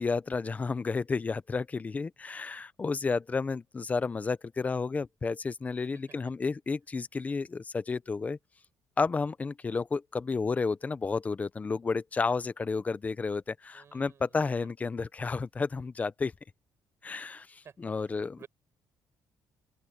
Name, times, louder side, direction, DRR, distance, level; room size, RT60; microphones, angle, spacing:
voice 1, 0.0-8.4 9.0-16.3 17.0-18.4, left 4 dB, 20° left, 0.7 m, -31 dB
voice 2, 13.7-14.7 17.6-17.8 18.0-18.5, right 7 dB, 40° right, 7.5 m, -54 dB
open air
cardioid pair, 150°, 7 cm